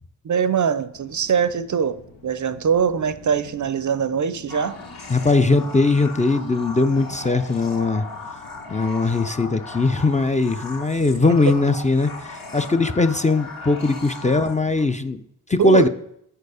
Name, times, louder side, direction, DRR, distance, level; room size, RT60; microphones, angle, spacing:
voice 1, 0.2-4.8 15.6-15.9, right 7 dB, 50° right, 14 dB, 0.5 m, -22 dB
sound 1, 0.9-14.8, left 4 dB, 90° left, 1.0 m, -47 dB
sound 2, 4.5-14.8, left 3 dB, 55° left, 2.0 m, -37 dB
voice 2, 5.1-8.1 8.7-12.1 12.5-15.2 15.5-15.9, left 3 dB, 20° left, 9 dB, 0.5 m, -20 dB
7.7 x 4.5 x 4.9 m, 0.75 s
cardioid pair, 45°, 40 cm